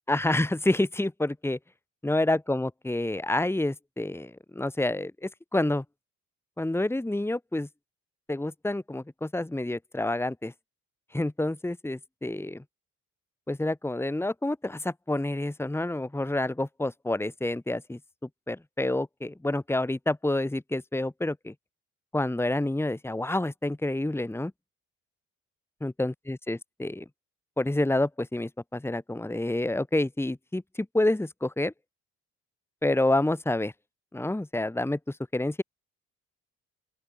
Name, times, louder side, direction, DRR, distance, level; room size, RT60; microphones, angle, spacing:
voice 1, 0.1-1.6 2.0-5.8 6.6-7.7 8.3-10.5 11.1-12.6 13.5-18.0 18.5-21.5 22.1-24.5 25.8-27.0 27.6-31.7 32.8-33.7 34.1-35.6, left 1 dB, 10° left, 2.3 m, -28 dB
open air
cardioid pair, 90°, 30 cm